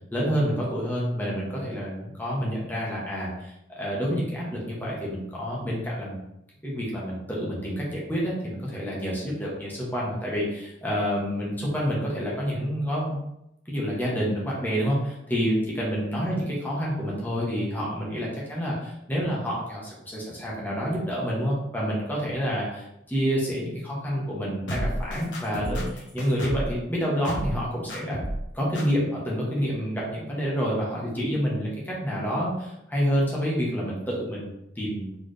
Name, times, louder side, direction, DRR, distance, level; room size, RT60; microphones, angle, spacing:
voice 1, 0.1-6.2 6.6-13.2 13.7-28.2 28.5-35.2, equal, 10° left, -5 dB, 1.2 m, -28 dB
sound 1, 24.7-26.8 27.2-27.6 27.9-28.5 28.7-28.8, equal, 70° left, 1.1 m, -31 dB
4.3 x 3.5 x 3.3 m, 0.84 s
head